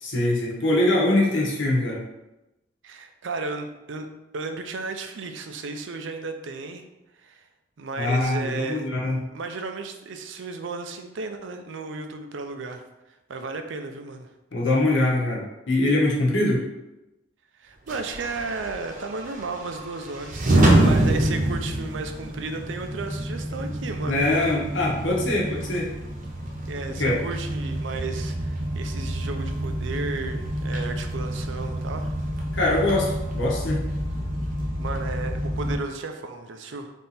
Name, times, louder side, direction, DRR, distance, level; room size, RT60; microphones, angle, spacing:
voice 1, 0.0-2.0 8.0-9.2 14.5-16.6 24.0-25.9 27.0-27.1 32.5-33.8, left 2 dB, 85° left, -3 dB, 1.0 m, -23 dB
voice 2, 2.8-4.1 4.3-6.9 7.2-7.5 7.8-8.8 9.3-12.8 13.3-14.3 17.6-24.5 26.7-32.1 34.8-36.9, right 3 dB, 75° right, 6 dB, 0.5 m, -34 dB
sound 1, 17.9-35.8, right 1 dB, 45° right, 0.8 m, -27 dB
3.6 x 2.8 x 4.0 m, 0.97 s
head